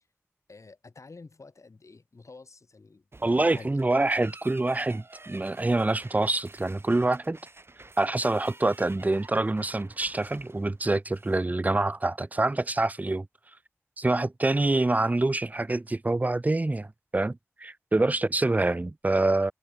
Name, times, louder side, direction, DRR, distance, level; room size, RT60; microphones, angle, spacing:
voice 1, 0.5-3.8, left 3 dB, 75° left, 3.4 m, -49 dB
sound 1, 3.1-11.5, right 2 dB, 50° right, 5.5 m, -50 dB
voice 2, 3.2-7.4 8.0-13.3 14.0-16.9 17.1-19.5, right 2 dB, 30° right, 0.5 m, -26 dB
wide cardioid pair, 65°, 5 cm